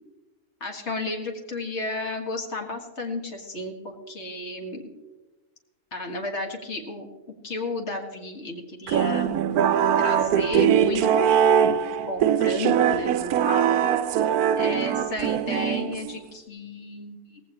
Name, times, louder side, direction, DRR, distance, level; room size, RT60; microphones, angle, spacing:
voice 1, 0.6-4.8 5.9-9.4 10.0-11.8 12.1-13.8 14.6-17.4, left 2 dB, 45° left, 2 dB, 2.0 m, -33 dB
sound 1, 8.9-16.3, right 8 dB, 75° right, 1.1 m, -22 dB
17.5 x 15.5 x 3.0 m, 1.2 s
omnidirectional pair, 1.6 m